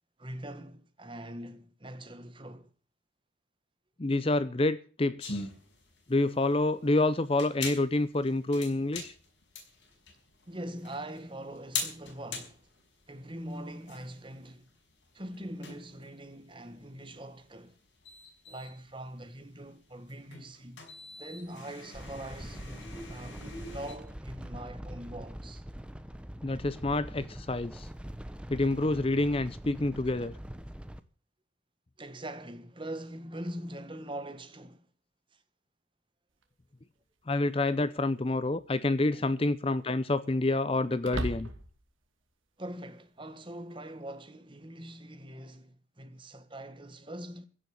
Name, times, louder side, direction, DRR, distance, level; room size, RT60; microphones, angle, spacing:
voice 1, 0.2-2.7 10.5-12.7 13.1-14.7 15.1-17.7 18.5-20.8 21.2-25.6 32.0-34.9 35.3-35.4 39.1-39.3 42.6-47.5, right 1 dB, 25° right, 1.6 m, -43 dB
voice 2, 4.0-5.5 6.1-9.1 26.4-27.9 28.5-30.3 37.3-41.5, left 2 dB, 30° left, 0.6 m, -28 dB
sound 1, 5.2-24.0, left 4 dB, 60° left, 5.7 m, -43 dB
sound 2, 21.9-31.0, equal, 5° right, 0.8 m, -43 dB
sound 3, 36.4-36.5 38.3-38.8 39.1-39.2 41.0-41.9, right 1 dB, 80° right, 2.3 m, -36 dB
16.0 x 6.9 x 9.9 m
head